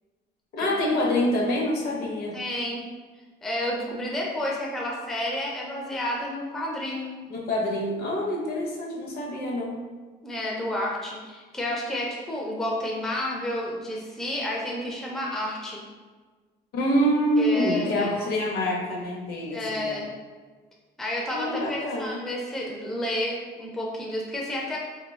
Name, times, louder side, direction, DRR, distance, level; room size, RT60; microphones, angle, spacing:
voice 1, 0.5-2.4 7.3-9.8 16.7-20.0 21.3-22.2, equal, 60° left, -1 dB, 0.6 m, -26 dB
voice 2, 2.3-2.8 3.4-7.2 10.2-15.8 17.4-18.3 19.5-20.1 21.0-24.8, left 1 dB, ahead, -3 dB, 0.4 m, -30 dB
2.3 x 2.1 x 3.4 m, 1.4 s
cardioid pair, 130°, 18 cm